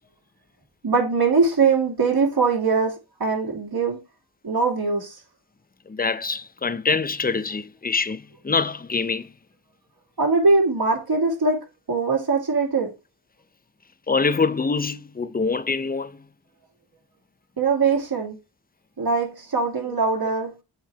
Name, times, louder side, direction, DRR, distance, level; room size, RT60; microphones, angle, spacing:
voice 1, 0.8-2.9 3.2-4.0 4.4-5.1 10.2-11.6 11.9-12.9 17.6-18.4 19.0-20.5, right 4 dB, 60° right, 2.3 m, -21 dB
voice 2, 5.9-9.3 14.1-16.2, left 4 dB, 20° left, 0.6 m, -25 dB
7.3 x 3.2 x 4.6 m
cardioid pair, 40°, 42 cm